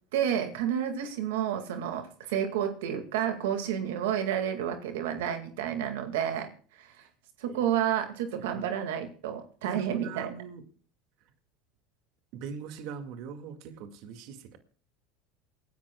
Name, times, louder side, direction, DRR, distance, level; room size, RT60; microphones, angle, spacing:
voice 1, 0.1-6.5 6.8-6.9 7.4-10.3, right 9 dB, 85° right, 6 dB, 2.1 m, -30 dB
voice 2, 9.6-10.6 12.3-14.6, right 6 dB, 65° right, 6 dB, 2.1 m, -41 dB
28.0 x 11.0 x 2.3 m, 0.43 s
supercardioid pair, 110°, 0 cm